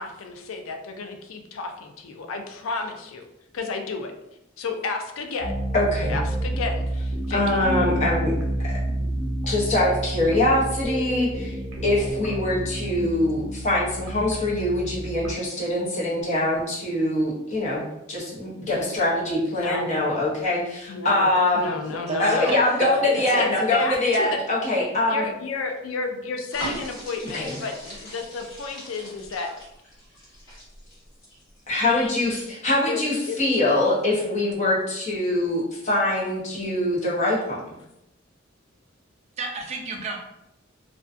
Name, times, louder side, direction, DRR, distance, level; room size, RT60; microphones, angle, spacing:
voice 1, 0.0-3.2 3.5-4.1 4.6-5.5 6.1-7.7 19.5-19.9 20.9-21.3 21.5-22.6 23.0-24.4 25.1-29.5 31.8-32.1 32.9-33.4, left 4 dB, 90° left, 4 dB, 0.4 m, -32 dB
sound 1, 5.4-15.3, right 1 dB, 85° right, 0.7 m, -29 dB
voice 2, 5.7-6.2 7.3-8.8 9.5-11.6 11.8-17.8 18.1-21.7 22.2-25.3 27.2-27.6 31.7-37.6, left 1 dB, 35° left, -5 dB, 0.7 m, -23 dB
voice 3, 21.9-23.0 39.4-40.2, right 2 dB, 35° right, 1 dB, 0.4 m, -30 dB
sound 2, 26.5-31.9 32.3-32.5, equal, 70° left, 1.2 m, -39 dB
2.4 x 2.2 x 2.4 m, 0.86 s
head